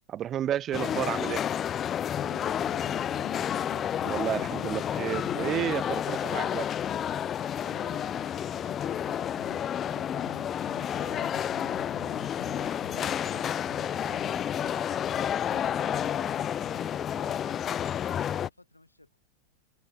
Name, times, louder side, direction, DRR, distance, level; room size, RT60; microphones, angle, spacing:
voice 1, 0.1-1.4 4.0-6.7, right 11 dB, 30° right, 1.1 m, -31 dB
sound 1, 0.7-18.5, left 9 dB, 25° left, 1.1 m, -30 dB
sound 2, 2.3-18.3, right 1 dB, 85° right, 1.9 m, -52 dB
voice 2, 18.1-19.2, left 2 dB, 85° left, 6.3 m, -53 dB
open air
figure-of-eight pair, 90°, 0 cm